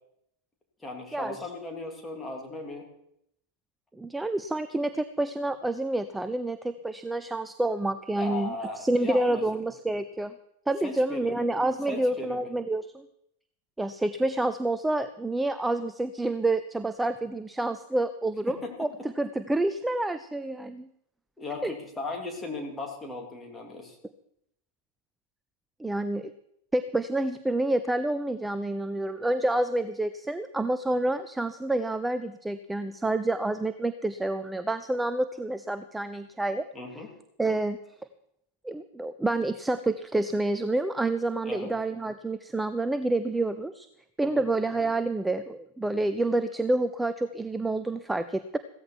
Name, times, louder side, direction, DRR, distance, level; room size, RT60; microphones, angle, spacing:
voice 1, 0.8-2.9 8.1-9.4 10.8-11.4 11.8-12.5 18.5-18.7 21.4-24.0 36.7-37.2 41.4-41.7 44.2-44.4, left 3 dB, 10° left, 1 dB, 3.3 m, -37 dB
voice 2, 4.0-10.3 10.7-13.1 13.8-18.9 19.2-20.9 21.6-21.7 25.8-26.3 26.7-36.6 37.4-37.8 38.6-43.9 44.2-48.6, right 2 dB, 5° right, 12 dB, 0.6 m, -28 dB
15.5 x 14.0 x 4.6 m, 0.76 s
figure-of-eight pair, 90°, 0 cm